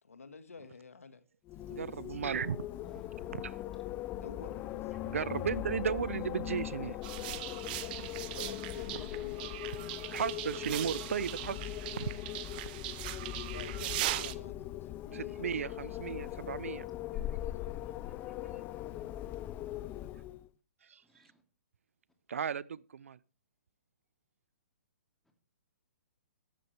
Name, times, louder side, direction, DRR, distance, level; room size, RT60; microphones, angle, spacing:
voice 1, 0.0-1.2 4.2-5.2 8.4-9.6 13.5-15.4 19.6-20.5, left 4 dB, 85° left, 1.7 m, -50 dB
Wind, 1.5-20.5, left 13 dB, 25° left, 0.4 m, -40 dB
voice 2, 1.7-2.6 3.3-3.6 5.0-7.0 8.0-8.1 9.7-12.1 15.1-16.9 20.8-21.2 22.3-23.2, right 7 dB, 70° right, 0.5 m, -36 dB
sound 1, 7.0-14.3, right 15 dB, 40° right, 0.9 m, -40 dB
voice 3, 21.0-21.4 25.3-25.4, left 1 dB, 5° left, 2.4 m, -70 dB
13.0 x 11.5 x 3.3 m
hypercardioid pair, 135°, 7 cm